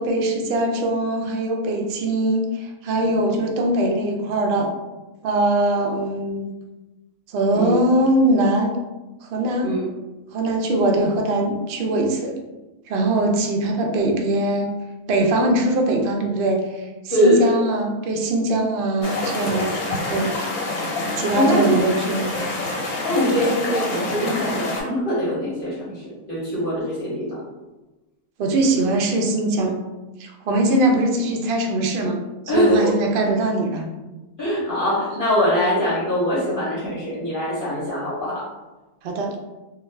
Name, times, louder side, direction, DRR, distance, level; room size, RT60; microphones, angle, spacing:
voice 1, 0.0-4.7 5.2-6.5 7.3-8.8 9.2-9.7 10.3-12.3 12.9-14.7 15.1-20.3 21.2-22.3 28.4-29.8 30.2-32.2 32.5-33.8 39.0-39.4, right 1 dB, 70° right, 2 dB, 0.5 m, -21 dB
voice 2, 17.1-17.5 21.3-21.7 23.0-27.4 32.5-32.9 34.4-38.5, equal, 45° left, -8 dB, 0.8 m, -22 dB
sound 1, 19.0-24.8, left 2 dB, 85° left, 1.2 m, -26 dB
2.4 x 2.4 x 3.1 m, 1.1 s
omnidirectional pair, 1.5 m